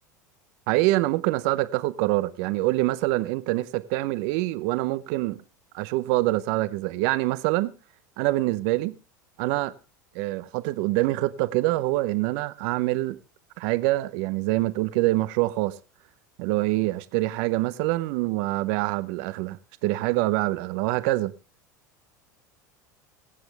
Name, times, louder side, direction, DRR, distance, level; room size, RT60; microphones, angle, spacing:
voice 1, 0.7-5.4 5.7-7.7 8.2-8.9 9.4-9.7 10.1-13.2 13.6-15.8 16.4-19.6 19.8-21.3, right 19 dB, 65° right, 0.7 m, -25 dB
22.5 x 7.9 x 3.4 m
hypercardioid pair, 85°, 10 cm